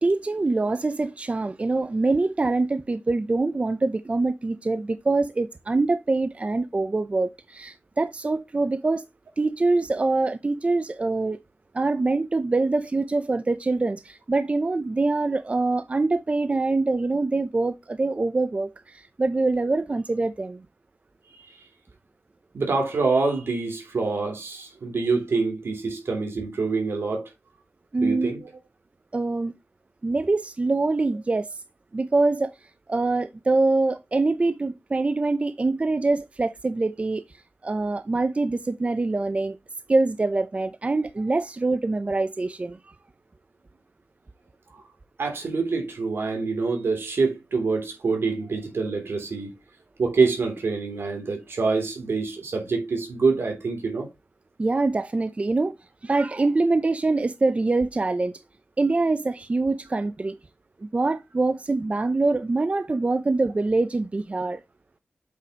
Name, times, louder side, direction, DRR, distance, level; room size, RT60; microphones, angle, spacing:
voice 1, 0.0-9.0 9.4-11.4 11.7-20.6 27.9-28.3 29.1-29.5 30.0-31.5 31.9-32.5 32.9-37.2 37.6-39.6 39.9-42.9 54.6-55.8 56.0-58.4 58.8-60.4 60.8-64.6, right 3 dB, 30° right, 0.6 m, -24 dB
voice 2, 22.5-27.3 28.0-28.4 44.7-44.8 45.2-49.5 50.0-54.1, right 4 dB, 85° right, 3.0 m, -26 dB
8.3 x 5.9 x 2.9 m
wide cardioid pair, 115°, 4 cm